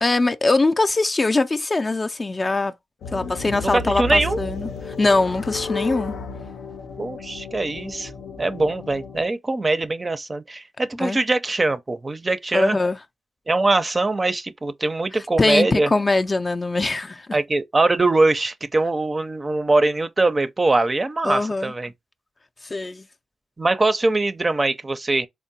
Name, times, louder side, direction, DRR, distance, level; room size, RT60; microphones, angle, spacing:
voice 1, 0.0-2.7 3.1-6.1 11.0-11.2 12.5-13.0 15.4-17.3 21.2-21.7 22.6-23.0, left 3 dB, 35° left, 0.4 m, -22 dB
sound 1, 3.0-9.3, left 3 dB, 90° left, 0.6 m, -33 dB
voice 2, 3.7-4.4 7.0-8.1 8.4-12.8 13.5-15.9 17.3-21.9 23.6-25.3, right 2 dB, 30° right, 0.5 m, -22 dB
3.7 x 2.0 x 4.0 m
cardioid pair, 70°, 0 cm